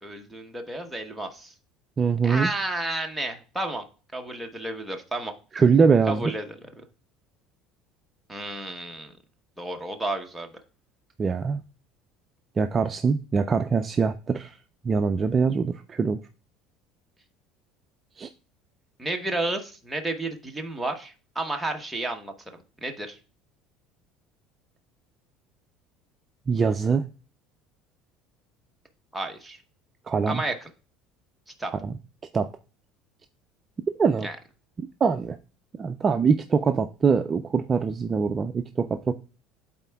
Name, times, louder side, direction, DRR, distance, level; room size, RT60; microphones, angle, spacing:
voice 1, 0.0-1.5 2.2-3.8 4.1-5.3 6.1-6.5 8.3-9.1 9.6-10.5 19.0-22.3 22.8-23.2 29.1-29.6 30.3-30.7 31.6-31.7 34.2-34.4, right 2 dB, 5° right, 1.0 m, -31 dB
voice 2, 2.0-2.5 5.5-6.2 11.2-11.6 12.6-14.6 14.8-16.2 18.2-18.3 26.5-27.0 30.1-30.4 31.8-31.9 32.3-32.5 34.0-34.3 35.0-35.4 35.8-39.1, right 5 dB, 25° right, 0.4 m, -23 dB
12.0 x 4.1 x 2.3 m
cardioid pair, 135°, 0 cm